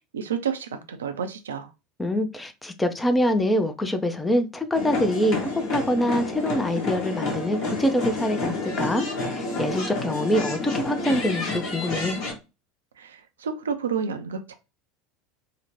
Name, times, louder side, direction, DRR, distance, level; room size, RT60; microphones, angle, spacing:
voice 1, 0.1-1.7 13.0-14.5, right 6 dB, 75° right, 0.4 m, -30 dB
voice 2, 2.0-12.2, equal, 10° left, 0.4 m, -25 dB
sound 1, 4.7-12.3, left 3 dB, 50° left, 1.0 m, -29 dB
2.8 x 2.1 x 2.9 m
figure-of-eight pair, 75°, 0 cm